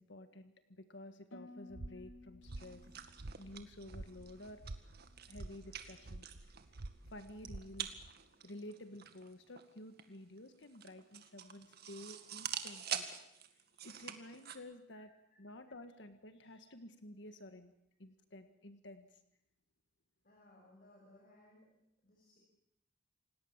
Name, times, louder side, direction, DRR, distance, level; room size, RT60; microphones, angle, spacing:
voice 1, 0.0-2.8 3.4-4.6 5.3-6.5 7.1-8.0 8.4-13.1 13.5-15.1 15.4-17.7 18.0-19.2, left 1 dB, 65° left, 9 dB, 1.6 m, -52 dB
Harp, 1.3-5.4 5.7-6.3 6.8-7.1, left 2 dB, 80° left, 2.6 m, -59 dB
sound 1, 1.7-8.1, right 2 dB, 85° right, 1.1 m, -50 dB
sound 2, 2.4-14.6, right 9 dB, 55° right, 2.1 m, -47 dB
voice 2, 20.2-21.7 22.0-22.4, left 1 dB, 45° left, -1 dB, 6.3 m, -63 dB
28.0 x 18.5 x 7.4 m, 0.78 s
head